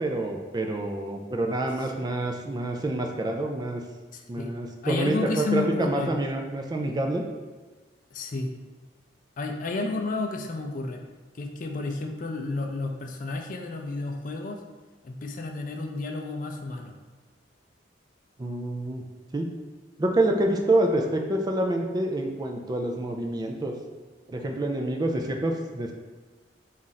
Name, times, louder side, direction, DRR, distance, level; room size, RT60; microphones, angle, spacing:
voice 1, 0.0-3.8 4.3-7.2 18.4-19.0 19.3-19.5 20.0-23.7 24.3-25.9, right 1 dB, 20° right, 2 dB, 0.3 m, -27 dB
voice 2, 4.1-4.5 4.8-6.1 8.1-8.5 9.4-11.0 11.3-14.6 15.0-17.0, left 3 dB, 50° left, 4 dB, 0.4 m, -31 dB
4.1 x 2.5 x 3.9 m, 1.3 s
head